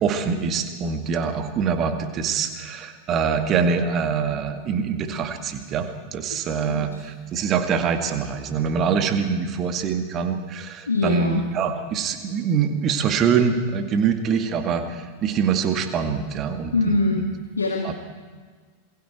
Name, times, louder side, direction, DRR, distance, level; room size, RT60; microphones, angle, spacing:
voice 1, 0.0-17.2 17.8-17.9, right 6 dB, 30° right, 6 dB, 2.2 m, -24 dB
voice 2, 6.5-7.0 10.9-11.4 16.7-17.9, left 3 dB, 75° left, 2 dB, 2.2 m, -24 dB
27.0 x 22.0 x 4.7 m, 1.5 s
figure-of-eight pair, 90°, 0 cm